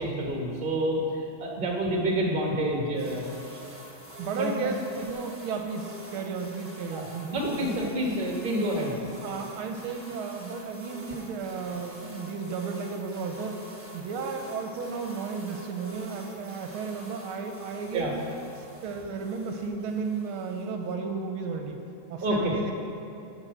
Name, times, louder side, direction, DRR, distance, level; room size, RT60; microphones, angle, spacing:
voice 1, 0.0-3.6 4.3-4.5 6.9-7.0 7.3-8.9 17.9-18.1 22.2-22.5, right 1 dB, 25° right, -1 dB, 1.3 m, -28 dB
sound 1, 2.9-20.9, right 1 dB, 10° right, 0.6 m, -47 dB
voice 2, 4.2-7.8 9.2-18.2 18.5-21.8 22.1-22.7, right 5 dB, 80° right, 4 dB, 1.5 m, -34 dB
7.4 x 6.3 x 7.9 m, 2.9 s
omnidirectional pair, 2.4 m